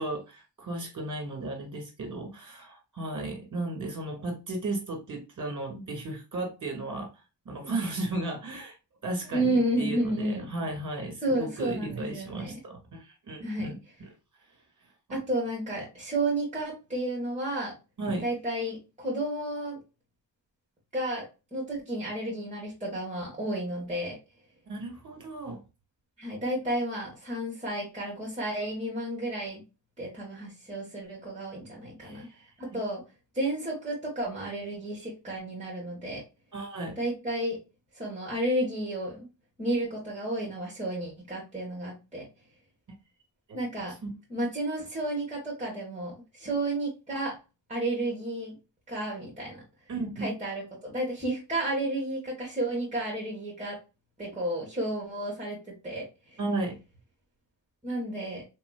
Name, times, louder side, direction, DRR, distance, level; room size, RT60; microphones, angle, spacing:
voice 1, 0.0-7.1 7.5-8.8 9.0-14.1 18.0-18.2 24.7-25.6 32.0-32.4 36.5-36.9 43.5-43.6 44.0-44.1 49.9-50.3 56.4-56.7, right 2 dB, 45° right, 2 dB, 1.9 m, -35 dB
voice 2, 9.3-10.5 11.2-12.5 13.4-13.7 15.1-17.7 18.2-19.8 20.9-21.2 21.5-24.1 26.2-29.6 30.0-32.3 32.6-33.0 33.3-36.2 37.0-37.6 37.9-39.3 39.6-42.2 43.5-43.9 44.3-47.4 47.7-48.5 48.9-49.6 50.2-53.8 54.2-56.0 56.3-56.4 57.8-58.4, right 1 dB, 15° right, -4 dB, 1.5 m, -31 dB
3.6 x 2.9 x 2.3 m, 0.28 s
cardioid pair, 70°, 41 cm